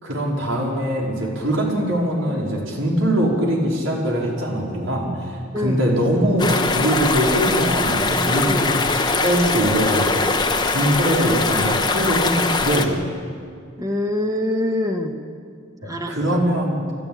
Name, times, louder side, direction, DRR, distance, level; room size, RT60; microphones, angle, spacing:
voice 1, 0.0-13.0 15.8-16.8, equal, 80° right, -2 dB, 5.0 m, -22 dB
sound 1, 6.4-12.9, left 3 dB, 20° left, 1.4 m, -21 dB
voice 2, 13.8-15.1 15.8-16.4, left 1 dB, 20° right, 3 dB, 1.8 m, -25 dB
29.5 x 13.0 x 8.9 m, 2.1 s
head